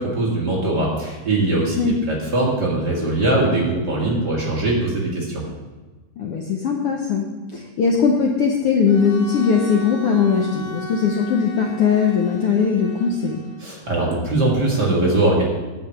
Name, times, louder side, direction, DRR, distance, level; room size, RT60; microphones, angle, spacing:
voice 1, 0.0-5.4 13.6-15.4, right 2 dB, 40° right, -4 dB, 1.9 m, -21 dB
voice 2, 6.2-7.3 7.5-13.4, left 6 dB, 90° left, 1 dB, 1.2 m, -19 dB
Bowed string instrument, 8.8-13.8, left 1 dB, 50° left, 1.1 m, -36 dB
9.0 x 5.7 x 7.6 m, 1.3 s
omnidirectional pair, 3.7 m